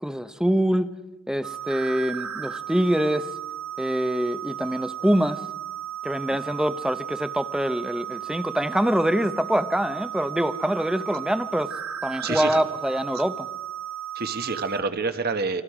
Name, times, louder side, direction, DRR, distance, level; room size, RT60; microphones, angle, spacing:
voice 1, 0.0-0.9 1.3-3.3 3.8-5.4 6.0-11.7 12.0-13.5, equal, 5° right, 0.7 m, -25 dB
sound 1, 1.4-14.8, right 10 dB, 85° right, 1.1 m, -35 dB
voice 2, 12.2-12.6 13.1-13.2 14.1-15.6, right 4 dB, 50° right, 1.3 m, -28 dB
29.5 x 25.5 x 4.9 m
head